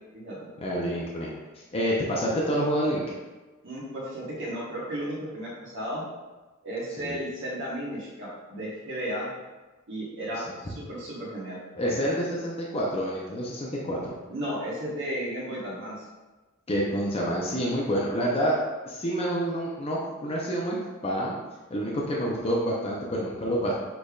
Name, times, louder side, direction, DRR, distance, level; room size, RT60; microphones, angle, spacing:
voice 1, 0.6-1.3 1.7-3.0 7.0-7.2 10.3-10.4 11.8-14.0 16.7-18.5 18.9-20.8 21.0-21.4 21.7-23.7, equal, 30° left, -4 dB, 0.6 m, -28 dB
voice 2, 3.6-6.0 6.6-9.3 9.9-11.6 14.3-16.0, equal, 60° right, -7 dB, 1.2 m, -34 dB
6.4 x 3.3 x 2.4 m, 1.2 s
head